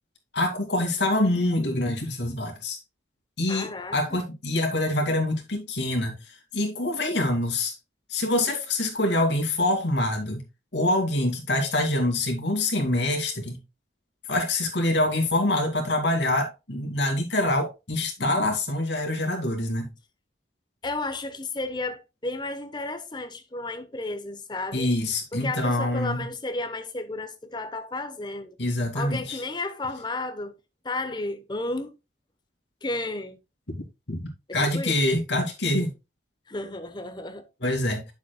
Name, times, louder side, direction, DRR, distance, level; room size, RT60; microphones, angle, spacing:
voice 1, 0.3-2.8 3.4-7.7 8.1-10.4 10.7-13.6 14.3-19.9 24.7-26.2 28.6-29.4 33.7-35.9 37.6-38.1, left 1 dB, 75° left, 2.4 m, -25 dB
voice 2, 3.5-4.2 20.8-24.9 25.3-28.6 28.9-30.6 30.8-31.9 32.8-33.4 34.5-35.0 36.5-37.4, left 2 dB, 25° left, 0.9 m, -33 dB
9.3 x 7.1 x 2.2 m
head